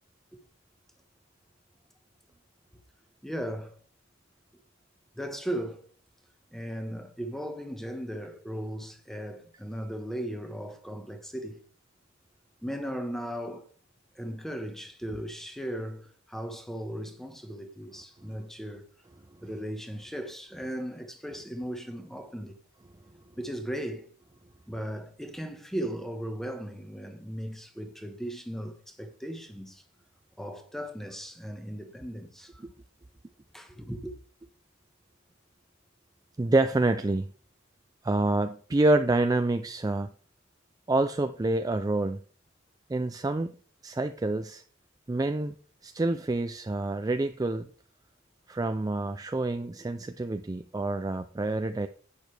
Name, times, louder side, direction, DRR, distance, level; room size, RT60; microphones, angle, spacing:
voice 1, 3.2-3.7 5.2-5.8 6.5-11.7 12.6-13.7 14.1-18.9 19.4-22.6 23.4-24.1 24.7-29.8 30.4-32.5 33.5-34.1, equal, ahead, 1.3 m, -37 dB
voice 2, 36.4-37.3 38.0-40.1 40.9-42.2 42.9-43.5 43.8-44.6 45.1-45.5 45.8-47.7 48.5-51.9, right 2 dB, 20° right, 0.4 m, -27 dB
10.5 x 8.6 x 3.4 m
head